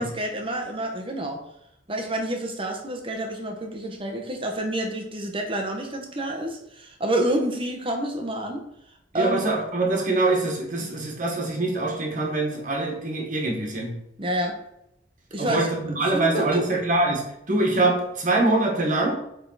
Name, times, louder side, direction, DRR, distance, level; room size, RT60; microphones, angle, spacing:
voice 1, 0.0-1.4 1.9-8.6 9.1-9.4 10.8-10.9 14.2-14.6 15.3-15.7 16.1-16.6, right 1 dB, 30° right, 3 dB, 1.2 m, -28 dB
voice 2, 9.1-13.9 15.4-17.2 17.5-19.1, right 2 dB, 45° right, -1 dB, 1.7 m, -24 dB
8.7 x 3.9 x 4.1 m, 0.80 s
head